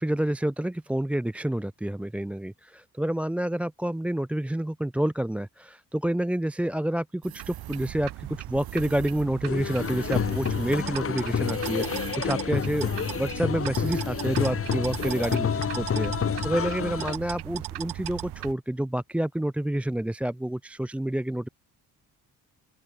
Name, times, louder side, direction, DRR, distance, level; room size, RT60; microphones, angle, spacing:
voice 1, 0.0-12.9 13.2-16.1 16.4-21.5, right 1 dB, 5° right, 0.3 m, -28 dB
sound 1, 7.2-8.0 8.5-9.3 9.6-15.5, right 13 dB, 65° right, 1.1 m, -45 dB
sound 2, 7.4-18.5, right 15 dB, 80° right, 1.4 m, -38 dB
sound 3, 9.4-17.2, left 7 dB, 35° left, 0.9 m, -29 dB
open air
supercardioid pair, 60°, 39 cm